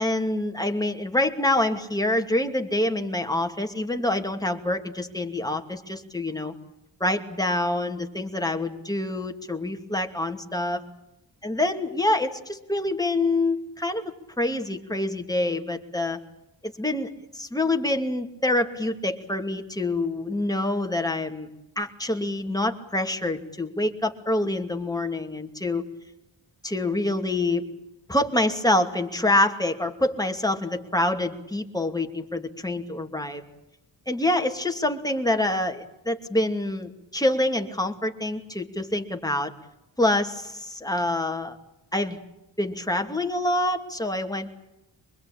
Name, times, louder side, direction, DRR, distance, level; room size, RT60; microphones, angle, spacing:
voice 1, 0.0-6.5 7.0-10.8 11.4-16.2 16.6-21.5 21.8-25.9 26.6-27.6 28.1-33.4 34.1-39.5 40.0-41.6 41.9-42.2 42.6-44.5, left 1 dB, 10° left, 4 dB, 2.6 m, -26 dB
24.5 x 21.0 x 8.9 m, 0.91 s
cardioid pair, 65°, 47 cm